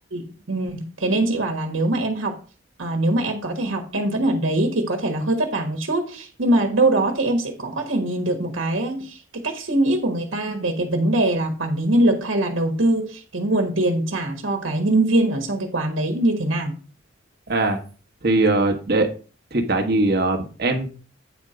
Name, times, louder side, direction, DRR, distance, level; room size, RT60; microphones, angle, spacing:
voice 1, 0.1-2.4 2.8-16.7, right 1 dB, 90° right, 3 dB, 1.5 m, -22 dB
voice 2, 17.5-17.8 18.2-19.1 19.5-20.9, right 2 dB, 55° right, 4 dB, 1.3 m, -20 dB
9.1 x 4.4 x 5.0 m, 0.37 s
head